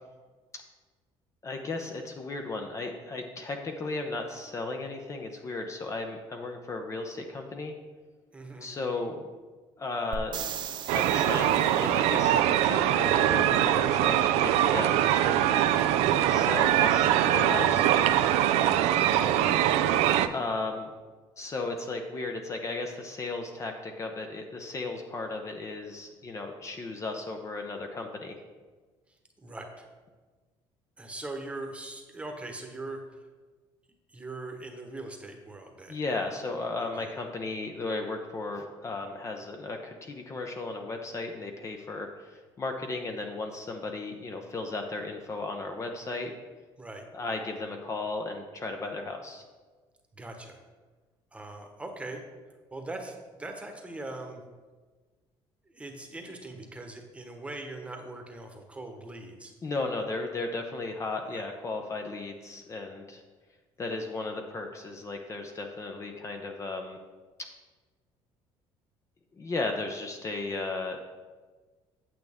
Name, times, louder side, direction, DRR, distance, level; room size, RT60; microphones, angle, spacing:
voice 1, 1.4-7.7 8.6-9.3 9.8-10.5 10.9-12.4 12.6-15.6 16.3-17.9 20.3-20.9 21.4-28.4 35.9-46.3 47.1-49.4 59.6-63.2 63.8-67.0 69.4-71.0, left 3 dB, 30° left, 4 dB, 0.7 m, -35 dB
voice 2, 8.3-8.7 19.2-19.6 29.4-29.8 31.0-33.2 34.1-36.0 36.8-37.1 46.8-47.0 50.1-50.6 51.3-52.2 52.7-54.4 55.7-59.5 61.3-61.4, right 2 dB, 10° right, 4 dB, 1.1 m, -41 dB
sound 1, 10.1-12.0 15.8-15.9, right 8 dB, 45° right, 0.7 m, -38 dB
sound 2, 10.9-20.3, right 11 dB, 90° right, 0.4 m, -23 dB
8.7 x 7.7 x 3.5 m, 1.4 s
cardioid pair, 125°, 10 cm